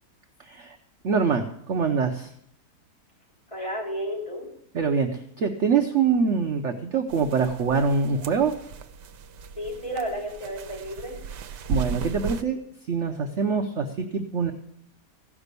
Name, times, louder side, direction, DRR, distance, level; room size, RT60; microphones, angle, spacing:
voice 1, 0.4-0.8 1.0-2.3 4.7-8.5 11.7-12.6 12.9-14.5, right 5 dB, 50° right, 4 dB, 1.0 m, -24 dB
voice 2, 3.5-4.5 9.6-11.1, equal, 15° left, -4 dB, 4.9 m, -32 dB
sound 1, 7.1-12.4, right 5 dB, 80° right, 1.3 m, -35 dB
16.5 x 6.1 x 8.2 m, 0.71 s
omnidirectional pair, 1.8 m